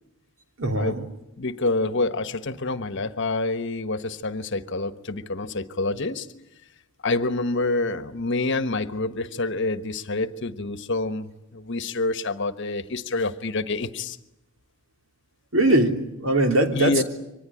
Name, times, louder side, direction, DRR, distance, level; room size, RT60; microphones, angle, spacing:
voice 1, 0.6-0.9 15.5-17.0, right 1 dB, 70° right, 5 dB, 3.3 m, -21 dB
voice 2, 1.4-6.3 7.0-14.2 16.7-17.0, left 2 dB, 60° left, 12 dB, 1.3 m, -27 dB
24.5 x 19.5 x 9.9 m, 0.89 s
head